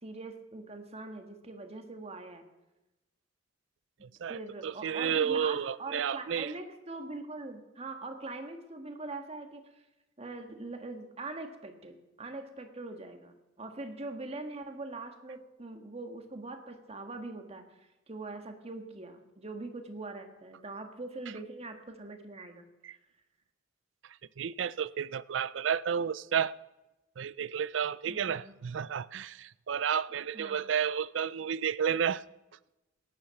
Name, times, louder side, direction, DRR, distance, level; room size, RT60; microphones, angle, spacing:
voice 1, 0.0-2.5 4.3-9.8 10.2-23.0 28.1-28.5 30.3-30.7, right 2 dB, 35° right, 5 dB, 1.7 m, -42 dB
voice 2, 4.0-6.5 22.8-23.0 24.4-26.5 27.2-32.2, right 8 dB, 80° right, 19 dB, 0.4 m, -31 dB
18.0 x 10.0 x 5.9 m, 1.0 s
head